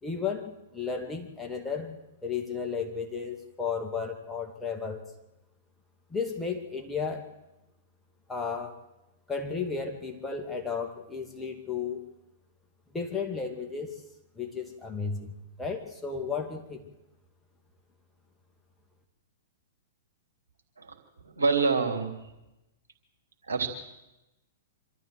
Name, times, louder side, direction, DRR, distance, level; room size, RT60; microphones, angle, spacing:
voice 1, 0.0-2.0 2.2-5.0 6.1-7.2 8.3-8.8 9.3-12.0 12.9-13.9 14.4-16.8, left 5 dB, 10° left, 2 dB, 2.3 m, -33 dB
voice 2, 21.2-22.2 23.5-23.7, right 4 dB, 80° right, 3 dB, 3.1 m, -26 dB
25.5 x 13.5 x 7.9 m, 0.96 s
figure-of-eight pair, 110°, 0 cm